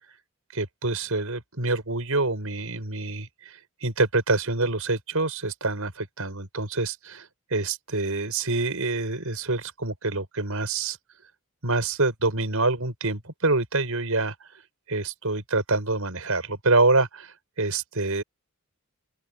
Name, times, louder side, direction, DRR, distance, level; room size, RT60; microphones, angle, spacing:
voice 1, 0.5-11.0 11.6-14.4 14.9-18.2, right 3 dB, 80° right, 5.5 m, -26 dB
open air
head